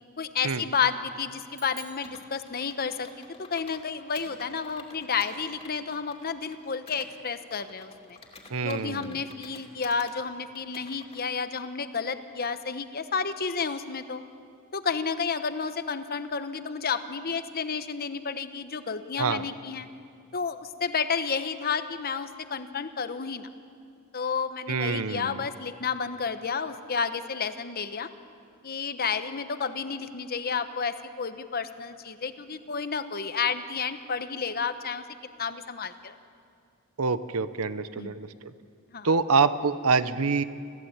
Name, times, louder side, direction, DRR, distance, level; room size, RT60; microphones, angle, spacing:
voice 1, 0.2-8.2 8.6-14.2 14.7-19.9 20.3-23.5 24.1-28.1 28.6-35.0 35.4-36.2 38.0-38.2 38.9-39.1, left 5 dB, 45° left, 10 dB, 1.0 m, -31 dB
sound 1, 1.5-3.2, right 3 dB, 15° right, 1.8 m, -50 dB
Computer keyboard, 2.0-3.8 4.2-7.1 7.5-10.2 10.6-11.2, left 3 dB, 25° left, 2.7 m, -50 dB
voice 2, 8.5-9.2 19.2-19.5 24.7-25.4 37.0-38.3 39.0-40.4, right 4 dB, 70° right, 13 dB, 0.8 m, -26 dB
29.0 x 14.5 x 8.8 m, 2.4 s
head